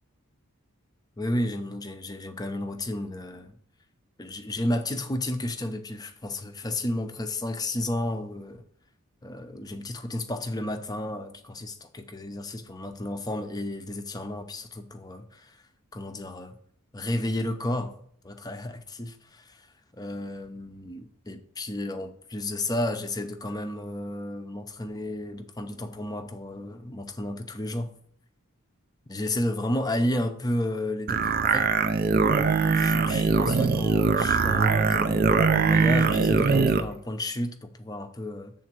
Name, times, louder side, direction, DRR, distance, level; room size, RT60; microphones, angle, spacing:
voice 1, 1.2-3.6 4.2-8.6 9.2-15.6 15.9-16.6 16.9-19.7 19.9-27.9 29.1-31.7 32.7-38.5, left 1 dB, 20° left, 0.6 m, -32 dB
sound 1, 31.1-36.9, right 4 dB, 45° right, 0.4 m, -22 dB
7.6 x 3.8 x 5.9 m
head